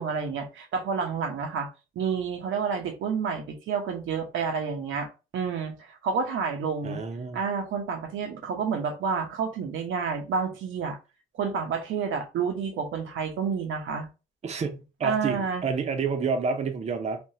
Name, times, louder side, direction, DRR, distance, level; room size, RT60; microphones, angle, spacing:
voice 1, 0.0-1.7 2.0-7.0 7.3-11.0 11.3-14.1 15.0-15.6, right 6 dB, 85° right, 0.7 m, -29 dB
voice 2, 6.8-7.4 14.4-17.2, right 5 dB, 35° right, 0.5 m, -29 dB
3.3 x 2.2 x 2.7 m
cardioid pair, 125°, 20 cm